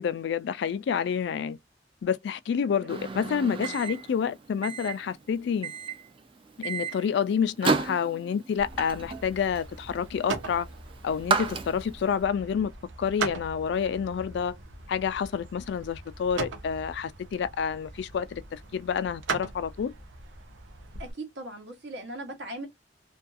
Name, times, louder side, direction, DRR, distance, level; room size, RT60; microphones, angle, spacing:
voice 1, 0.0-1.6 2.0-5.7 6.6-10.7 11.0-12.7 13.0-14.6 14.9-19.9, left 7 dB, 65° left, 0.3 m, -28 dB
Microwave oven, 2.9-12.1, right 4 dB, 30° right, 0.3 m, -33 dB
sound 1, 8.6-21.1, right 4 dB, 85° right, 0.5 m, -39 dB
voice 2, 21.0-22.7, right 1 dB, 70° right, 1.0 m, -39 dB
2.5 x 2.3 x 2.4 m
head